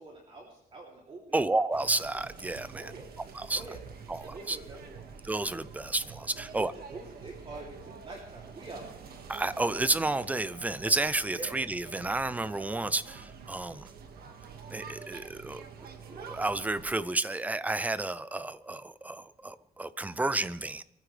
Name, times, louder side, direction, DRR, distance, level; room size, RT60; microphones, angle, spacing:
voice 1, 0.0-1.4 2.7-3.1 3.5-3.8 4.3-5.1 6.3-9.2 11.3-11.6, right 2 dB, 35° right, -2 dB, 3.1 m, -45 dB
voice 2, 1.3-2.9 3.3-3.6 4.1-4.6 5.2-6.7 9.3-13.9 14.7-15.6 16.1-20.8, right 2 dB, 10° right, 15 dB, 0.5 m, -31 dB
sound 1, 1.7-17.0, right 6 dB, 65° right, 1.8 m, -47 dB
24.0 x 14.5 x 3.3 m, 0.77 s
cardioid pair, 160°, 17 cm